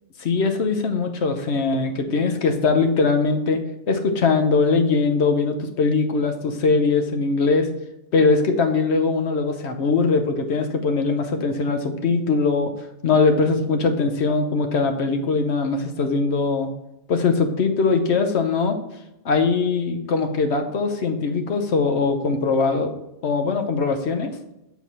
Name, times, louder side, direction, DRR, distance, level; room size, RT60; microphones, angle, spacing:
voice 1, 0.2-7.7 8.1-12.7 13.0-16.7 17.1-18.8 19.2-22.9 23.2-24.3, left 4 dB, 65° left, 6 dB, 1.1 m, -21 dB
7.1 x 4.2 x 4.1 m, 0.90 s
omnidirectional pair, 1.2 m